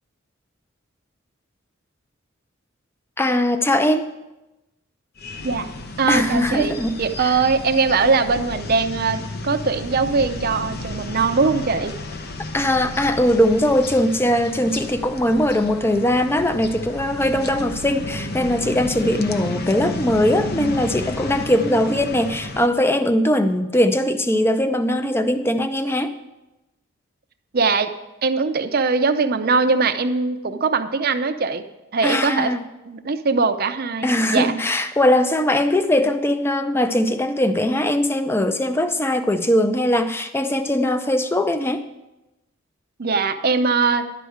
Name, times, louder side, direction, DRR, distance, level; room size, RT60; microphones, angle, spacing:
voice 1, 3.2-4.1 6.1-7.3 12.5-26.1 32.0-32.6 34.0-41.9, left 1 dB, 10° left, 9 dB, 0.5 m, -20 dB
sound 1, 5.2-22.7, left 2 dB, 50° left, 0.7 m, -32 dB
voice 2, 6.0-11.9 27.5-27.9 28.2-31.6 31.9-32.5 32.9-34.5 43.0-44.1, right 4 dB, 45° right, 8 dB, 0.6 m, -21 dB
11.5 x 5.0 x 7.9 m, 0.99 s
head